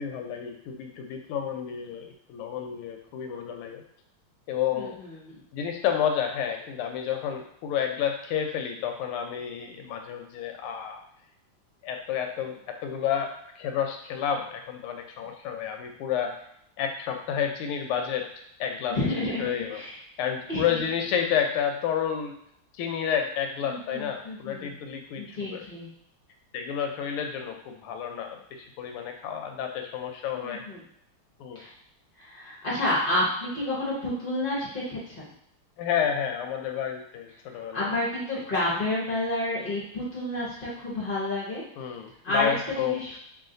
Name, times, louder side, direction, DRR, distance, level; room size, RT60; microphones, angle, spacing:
voice 1, 0.0-3.8 4.5-5.0 5.5-11.0 11.8-13.3 13.6-16.3 16.8-18.3 18.6-19.8 20.2-22.3 22.8-25.6 26.5-30.6 31.4-31.6 35.8-37.9 41.8-43.0, left 8 dB, 85° left, 4 dB, 1.5 m, -30 dB
voice 2, 4.7-5.4 18.9-20.0 20.5-20.8 23.6-24.7 25.2-25.9 30.3-30.8 31.5-31.7 32.2-35.3 37.7-41.6 42.2-42.5 42.8-43.2, left 1 dB, 45° left, -6 dB, 0.7 m, -30 dB
3.2 x 2.7 x 3.8 m, 0.72 s
omnidirectional pair, 2.4 m